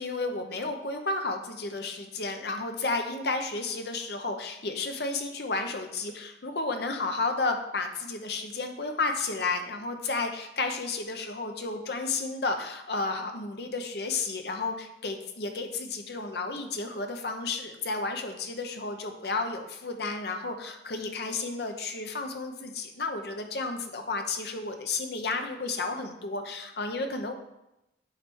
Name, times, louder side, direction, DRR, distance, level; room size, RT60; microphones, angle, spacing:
voice 1, 0.0-27.3, left 3 dB, 60° left, 5 dB, 0.7 m, -32 dB
8.5 x 3.2 x 4.5 m, 0.89 s
head